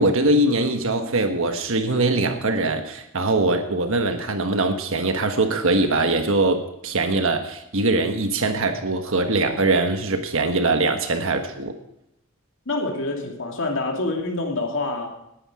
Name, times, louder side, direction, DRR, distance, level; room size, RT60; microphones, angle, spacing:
voice 1, 0.0-11.7, right 2 dB, 65° right, 6 dB, 1.4 m, -22 dB
voice 2, 12.7-15.1, left 2 dB, 60° left, 1 dB, 2.6 m, -26 dB
19.0 x 10.0 x 4.9 m, 0.82 s
head